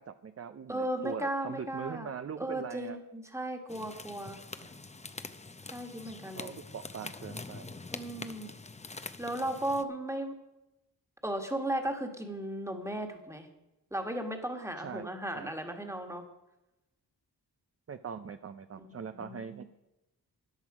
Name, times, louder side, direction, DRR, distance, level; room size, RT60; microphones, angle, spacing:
voice 1, 0.0-3.0 4.6-4.7 6.3-7.8 14.8-15.5 17.9-19.7, right 7 dB, 40° right, 10 dB, 0.5 m, -42 dB
voice 2, 0.7-2.1 2.4-4.4 5.7-6.6 7.9-8.5 9.2-10.3 11.2-13.5 13.9-16.2 18.8-19.7, right 1 dB, 5° right, 4 dB, 1.6 m, -36 dB
sound 1, 3.7-9.8, left 3 dB, 20° left, 0.6 m, -45 dB
13.5 x 10.5 x 4.9 m, 0.95 s
wide cardioid pair, 150°, 38 cm